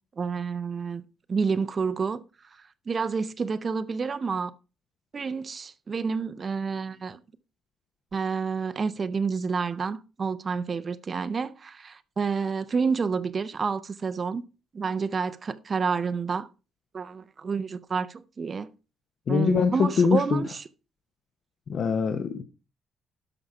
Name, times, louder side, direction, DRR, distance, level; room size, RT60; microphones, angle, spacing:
voice 1, 0.2-1.0 1.3-2.2 2.9-4.5 5.1-7.2 8.1-14.4 14.7-16.5 16.9-18.7 19.3-20.6, right 5 dB, 25° right, 0.6 m, -29 dB
voice 2, 19.3-20.4 21.7-22.4, left 6 dB, 45° left, 0.8 m, -23 dB
12.0 x 5.5 x 4.8 m
cardioid pair, 175°, 0 cm